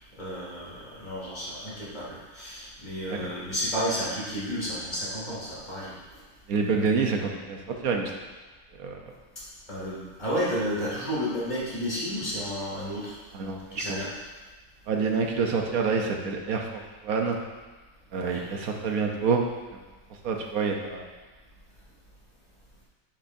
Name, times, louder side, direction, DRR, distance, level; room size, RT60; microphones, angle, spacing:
voice 1, 0.2-5.9 9.7-13.2 13.7-14.1 18.1-18.4, equal, 30° left, -8 dB, 2.5 m, -32 dB
voice 2, 6.5-8.1 8.8-9.0 13.3-14.0 14.9-17.4 18.1-19.4 20.2-21.1, right 5 dB, 75° right, 2 dB, 1.3 m, -27 dB
10.0 x 6.0 x 2.7 m, 1.2 s
omnidirectional pair, 1.5 m